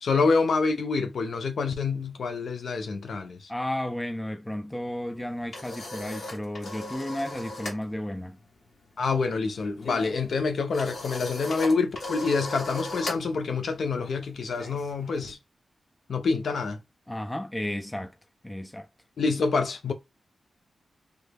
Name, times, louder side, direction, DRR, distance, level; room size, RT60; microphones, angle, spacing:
voice 1, 0.0-3.5 9.0-15.4 16.1-16.8 19.2-19.9, left 4 dB, 70° left, 0.5 m, -27 dB
voice 2, 3.5-8.4 17.1-18.1 18.4-18.9, left 1 dB, 10° left, 0.3 m, -33 dB
sound 1, 5.1-7.8 8.1-8.4 8.7-15.3, left 2 dB, 55° left, 1.0 m, -38 dB
3.2 x 2.2 x 3.3 m
wide cardioid pair, 165°, 0 cm